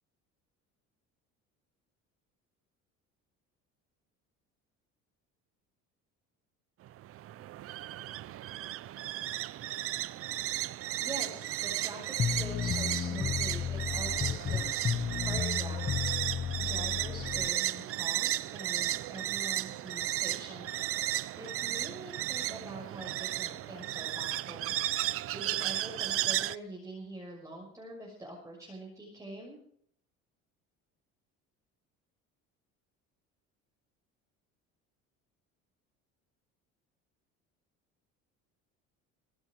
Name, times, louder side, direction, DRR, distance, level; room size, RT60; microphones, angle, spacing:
sound 1, 6.8-26.6, right 14 dB, 50° right, 0.7 m, -34 dB
voice 1, 11.0-29.6, right 1 dB, 10° right, -3 dB, 6.2 m, -45 dB
sound 2, 12.2-17.5, left 8 dB, 30° left, 1.0 m, -33 dB
23.5 x 11.0 x 4.7 m, 0.62 s
cardioid pair, 115°, 29 cm